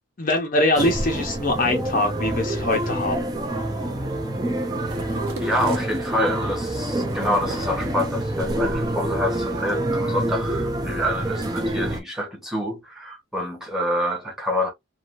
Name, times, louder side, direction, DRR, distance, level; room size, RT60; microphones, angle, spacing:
voice 1, 0.2-3.3, left 2 dB, 40° left, 0.6 m, -23 dB
sound 1, 0.8-12.0, right 1 dB, 20° right, 0.5 m, -27 dB
sound 2, 2.7-3.1 3.8-4.2 4.5-4.6 4.9-6.5 7.1-7.9, right 3 dB, 80° right, 0.8 m, -40 dB
voice 2, 5.4-14.7, equal, ahead, 1.0 m, -27 dB
3.3 x 2.2 x 2.5 m
head